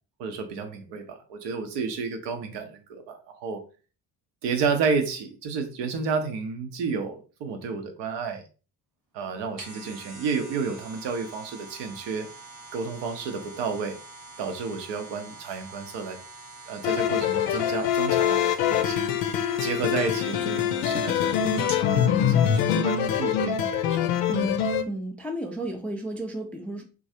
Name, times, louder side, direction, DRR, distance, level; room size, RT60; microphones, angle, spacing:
voice 1, 0.2-3.6 4.4-8.4 9.1-12.3 12.7-14.0 14.4-16.2 16.7-19.1 19.6-24.1 24.4-24.5, right 5 dB, 60° right, 0.7 m, -31 dB
sound 1, 9.3-21.9 22.3-22.4, right 3 dB, 80° right, 1.0 m, -45 dB
sound 2, 16.8-24.9, left 9 dB, 70° left, 0.5 m, -24 dB
voice 2, 24.3-26.8, right 1 dB, 5° left, 0.4 m, -33 dB
3.0 x 2.4 x 2.7 m
figure-of-eight pair, 45°, 49 cm